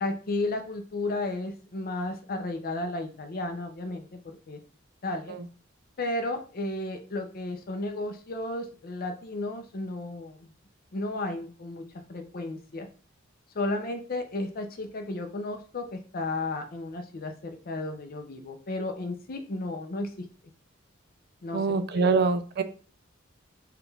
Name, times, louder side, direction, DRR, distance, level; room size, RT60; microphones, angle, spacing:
voice 1, 0.0-4.6 5.0-5.4 6.0-10.5 10.9-11.8 12.1-12.9 13.5-20.2 21.4-21.6 21.9-22.2, left 2 dB, 45° left, 0.6 m, -33 dB
voice 2, 21.5-22.6, right 4 dB, 50° right, 0.4 m, -24 dB
4.8 x 2.3 x 3.3 m
head